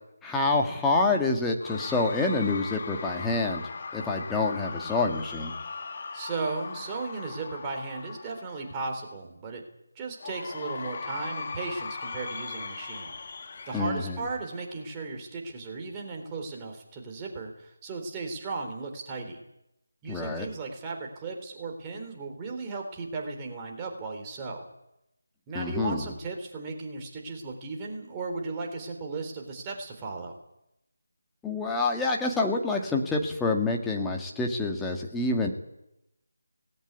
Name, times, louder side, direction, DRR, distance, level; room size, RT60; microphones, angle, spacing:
voice 1, 0.2-3.6 3.9-5.5 13.7-14.2 20.1-20.5 25.5-26.1 31.4-35.5, left 3 dB, 5° left, 0 dB, 1.9 m, -27 dB
Cheering / Crowd, 1.6-8.9 10.2-14.9, left 4 dB, 40° left, 2.0 m, -39 dB
voice 2, 6.1-9.6 10.0-13.1 13.7-19.4 20.0-24.6 25.5-30.4, right 3 dB, 15° right, 1 dB, 3.7 m, -36 dB
18.5 x 17.0 x 9.7 m, 0.86 s
figure-of-eight pair, 160°, 0 cm